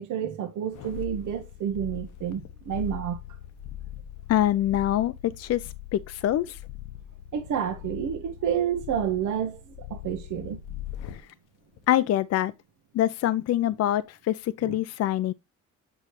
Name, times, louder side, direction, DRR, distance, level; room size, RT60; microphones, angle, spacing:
voice 1, 0.0-3.2 7.3-10.6 14.6-14.8, right 9 dB, 80° right, 1.1 m, -29 dB
sound 1, 0.6-11.3 11.7-11.9, left 11 dB, 85° left, 1.0 m, -41 dB
voice 2, 4.3-6.6 11.9-12.5 12.9-15.3, left 12 dB, 55° left, 0.5 m, -25 dB
7.7 x 4.9 x 3.1 m
cardioid pair, 90°, 30 cm